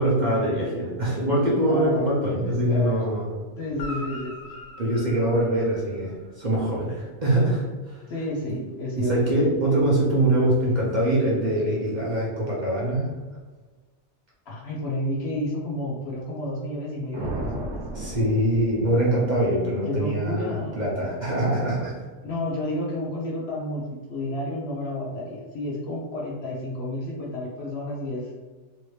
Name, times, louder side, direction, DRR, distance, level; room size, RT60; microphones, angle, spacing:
voice 1, 0.0-3.3 4.8-8.0 8.5-8.6 9.0-13.1 17.9-21.9, right 1 dB, 40° right, -6 dB, 0.8 m, -23 dB
voice 2, 1.7-3.0 3.6-4.3 6.0-6.1 8.1-9.1 14.5-17.7 19.8-20.8 22.2-28.3, left 1 dB, 60° left, -3 dB, 0.8 m, -31 dB
Guitar, 3.7-6.3 10.2-10.3, equal, 80° left, 1.0 m, -40 dB
sound 1, 17.1-19.4, right 2 dB, 70° right, 1.0 m, -34 dB
3.2 x 2.8 x 3.2 m, 1.3 s
omnidirectional pair, 1.4 m